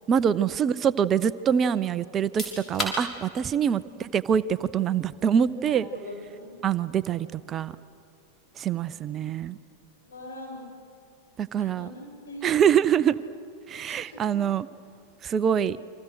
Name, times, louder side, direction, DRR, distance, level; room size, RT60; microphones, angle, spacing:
voice 1, 0.1-5.9 6.6-7.7 8.6-9.6 11.4-11.9 12.4-13.2 13.7-14.7 15.2-15.8, right 8 dB, 25° right, 16 dB, 0.5 m, -24 dB
sound 1, 2.1-14.8, equal, 20° left, 6.2 m, -43 dB
voice 2, 5.7-6.5 10.0-10.6 11.6-12.5 13.9-14.2, left 1 dB, 65° left, -1 dB, 7.8 m, -42 dB
29.5 x 25.5 x 6.4 m, 2.6 s
figure-of-eight pair, 90°, 0 cm